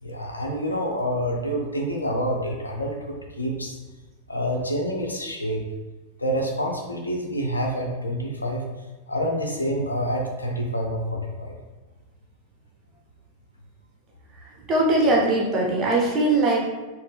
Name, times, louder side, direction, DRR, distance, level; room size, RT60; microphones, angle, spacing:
voice 1, 0.0-3.8 4.3-5.6 6.2-8.6 9.1-11.6, equal, 80° left, 0 dB, 0.5 m, -27 dB
voice 2, 14.7-16.7, right 2 dB, 25° right, -2 dB, 0.9 m, -21 dB
4.2 x 2.0 x 3.4 m, 1.2 s
figure-of-eight pair, 90°, 0 cm